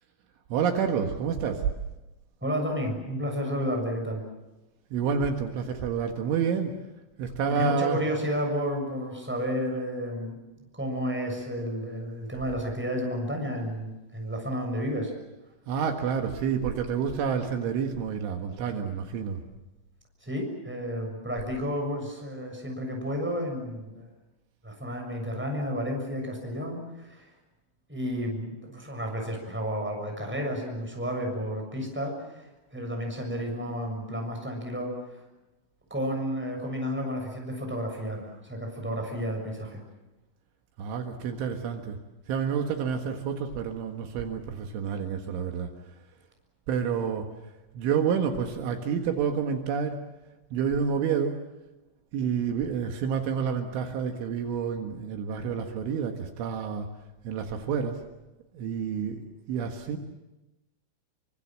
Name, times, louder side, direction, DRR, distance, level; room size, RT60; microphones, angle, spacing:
voice 1, 0.5-1.7 4.9-6.8 7.2-8.0 15.7-19.4 40.8-42.0 42.3-45.7 46.7-47.3 47.7-50.0 50.5-51.4 52.1-56.9 57.2-58.0 58.5-59.2 59.5-60.0, right 6 dB, 75° right, 4 dB, 3.9 m, -29 dB
voice 2, 2.4-4.2 7.5-10.4 10.8-15.1 20.2-24.1 24.6-27.3 27.9-35.2 35.9-39.8, equal, ahead, 2 dB, 6.4 m, -32 dB
27.5 x 24.5 x 7.5 m, 1.0 s
omnidirectional pair, 5.8 m